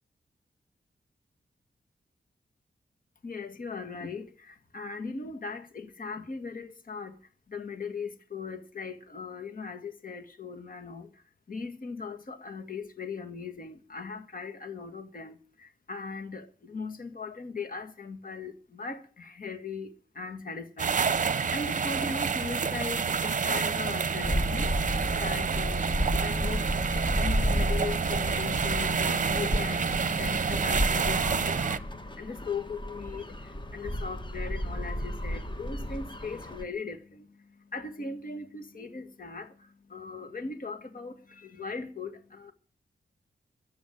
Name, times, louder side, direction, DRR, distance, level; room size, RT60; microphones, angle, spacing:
voice 1, 3.2-7.2 7.5-24.8 25.2-26.7 27.2-42.5, left 4 dB, 55° left, 1.9 m, -39 dB
sound 1, 20.8-31.8, right 6 dB, 50° right, 0.7 m, -28 dB
sound 2, 24.2-36.6, equal, 25° left, 1.5 m, -32 dB
13.5 x 7.2 x 9.2 m
wide cardioid pair, 105°, 17 cm